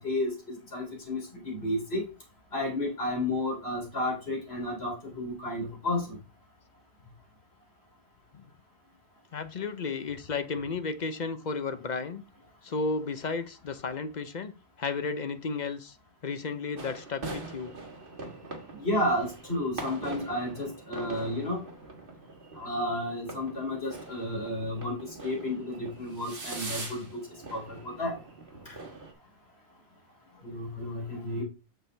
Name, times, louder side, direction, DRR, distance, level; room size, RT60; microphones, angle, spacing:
voice 1, 0.0-2.1 2.5-6.2 18.7-21.6 22.6-27.2 27.5-28.2 30.4-31.4, left 1 dB, 80° left, 3.5 m, -32 dB
voice 2, 9.3-12.2 12.6-14.5 14.8-15.9 16.2-17.7, left 4 dB, 50° left, 0.8 m, -33 dB
sound 1, 16.8-29.1, right 3 dB, 60° right, 1.8 m, -43 dB
7.9 x 6.7 x 3.3 m
omnidirectional pair, 1.0 m